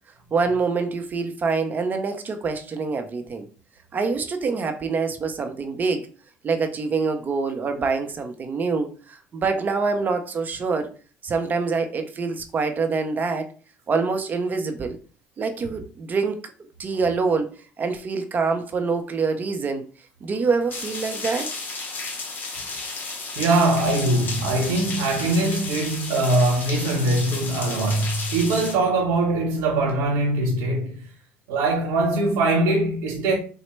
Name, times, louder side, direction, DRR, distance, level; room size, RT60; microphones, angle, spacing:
voice 1, 0.3-3.5 3.9-6.1 6.4-10.9 11.2-13.5 13.9-15.0 15.4-16.5 16.8-17.5 17.8-19.8 20.2-21.5, right 4 dB, 35° right, 0.6 m, -25 dB
sound 1, 20.7-28.8, left 3 dB, 40° left, 1.0 m, -33 dB
voice 2, 23.4-31.0 31.5-33.3, right 2 dB, 85° right, 1.0 m, -22 dB
4.0 x 2.1 x 3.1 m
supercardioid pair, 85°, 5 cm